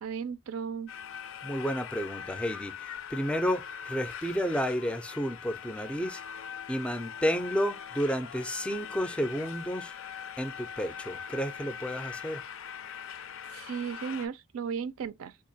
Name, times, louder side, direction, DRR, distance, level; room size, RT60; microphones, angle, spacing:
voice 1, 0.0-0.9 13.5-15.4, right 7 dB, 80° right, 0.4 m, -35 dB
sound 1, 0.9-14.3, left 7 dB, 70° left, 0.4 m, -41 dB
voice 2, 1.4-6.2 6.7-9.9 10.4-12.4, equal, 5° left, 0.3 m, -31 dB
3.7 x 2.7 x 2.6 m
head